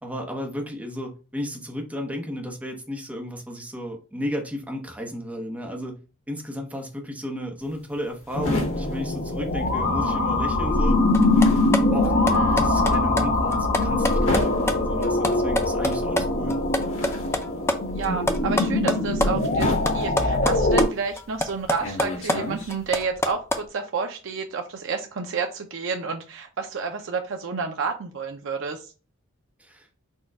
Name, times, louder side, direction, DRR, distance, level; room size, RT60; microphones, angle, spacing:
voice 1, 0.0-6.0 6.3-11.0 11.3-11.6 11.9-16.5 29.6-29.9, equal, 5° right, 2 dB, 0.8 m, -33 dB
sound 1, 7.6-10.1 10.4-23.0, left 1 dB, 65° left, 1.5 m, -33 dB
sound 2, 8.3-20.9, left 2 dB, 50° left, 0.8 m, -23 dB
sound 3, 11.1-16.2 16.5-19.3 19.6-20.9 21.2-23.6, left 1 dB, 10° left, 0.4 m, -26 dB
voice 2, 17.9-28.9, right 5 dB, 60° right, 4 dB, 0.5 m, -30 dB
4.3 x 2.3 x 4.6 m, 0.34 s
head